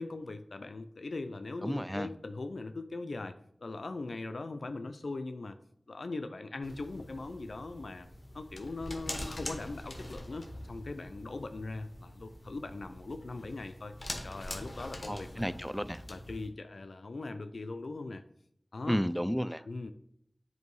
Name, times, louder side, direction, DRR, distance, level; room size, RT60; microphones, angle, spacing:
voice 1, 0.0-5.6 5.9-8.1 8.3-13.9 14.2-15.5 16.1-18.2 18.7-19.0 19.7-19.9, left 3 dB, 80° left, 8 dB, 0.3 m, -40 dB
voice 2, 1.6-2.1 15.1-16.0 18.9-19.6, equal, ahead, 14 dB, 0.3 m, -32 dB
sound 1, 6.6-16.5, left 1 dB, 50° left, 1.0 m, -44 dB
8.0 x 2.7 x 4.6 m, 0.70 s
wide cardioid pair, 55°, 0 cm